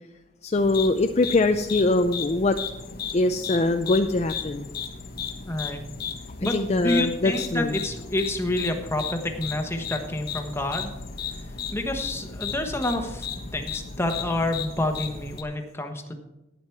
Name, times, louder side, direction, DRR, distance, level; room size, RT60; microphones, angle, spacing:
voice 1, 0.4-2.6 3.1-4.7 6.4-7.8, left 2 dB, 35° left, 7 dB, 0.5 m, -23 dB
sound 1, 0.5-15.4, left 6 dB, 55° left, 1.1 m, -35 dB
voice 2, 5.5-5.8 6.4-10.9 11.7-13.3 13.5-16.1, left 1 dB, 15° left, 5 dB, 1.2 m, -28 dB
11.5 x 9.4 x 4.6 m, 0.98 s
head